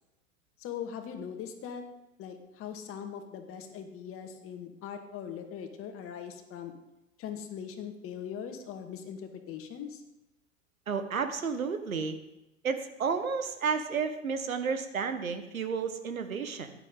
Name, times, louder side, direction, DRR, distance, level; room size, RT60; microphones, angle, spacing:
voice 1, 0.6-1.8 2.2-6.7 7.2-10.0, left 8 dB, 30° left, 6 dB, 1.9 m, -40 dB
voice 2, 10.9-12.2 12.6-16.7, right 5 dB, 75° right, 9 dB, 1.4 m, -32 dB
16.0 x 10.5 x 3.9 m, 0.94 s
figure-of-eight pair, 95°, 41 cm